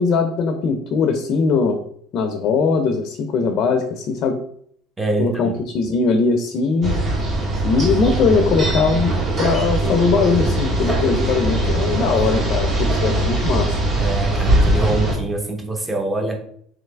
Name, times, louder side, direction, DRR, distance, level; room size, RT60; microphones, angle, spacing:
voice 1, 0.0-1.8 2.1-4.4 5.2-7.0 7.6-13.8, left 4 dB, 50° left, 6 dB, 0.5 m, -20 dB
voice 2, 5.0-5.5 13.9-16.4, right 2 dB, 15° right, 3 dB, 0.8 m, -24 dB
sound 1, 6.8-15.1, right 1 dB, 35° right, 1.2 m, -20 dB
3.7 x 3.2 x 3.3 m, 0.64 s
supercardioid pair, 120°, 0 cm